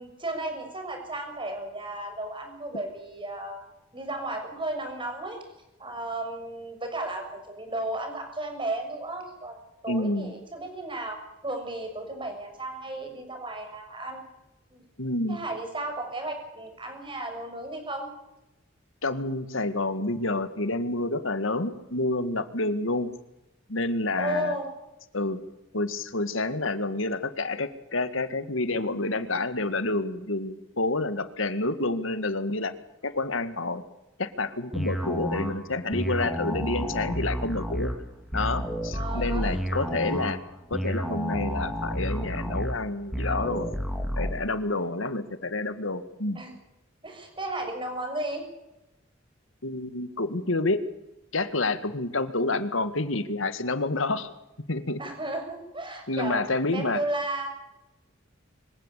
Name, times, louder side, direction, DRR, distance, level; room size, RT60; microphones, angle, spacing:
voice 1, 0.0-3.6 3.9-5.4 5.8-14.2 14.7-14.8 15.3-18.1 24.2-24.7 38.9-39.6 40.0-40.2 44.7-45.0 46.3-46.5 47.0-48.4 55.0-56.4 56.7-57.5, right 2 dB, 25° right, 4 dB, 6.5 m, -34 dB
voice 2, 9.9-10.3 15.0-15.4 19.0-23.1 23.7-24.6 25.1-25.4 25.7-32.7 33.0-33.8 34.2-37.9 38.3-40.4 40.7-43.7 44.2-46.4 49.6-50.8 51.3-54.3 54.7-55.0 56.1-57.0, left 2 dB, 85° left, 11 dB, 2.0 m, -28 dB
sound 1, 34.7-44.3, equal, ahead, 3.1 m, -31 dB
25.5 x 16.0 x 8.3 m, 0.94 s
head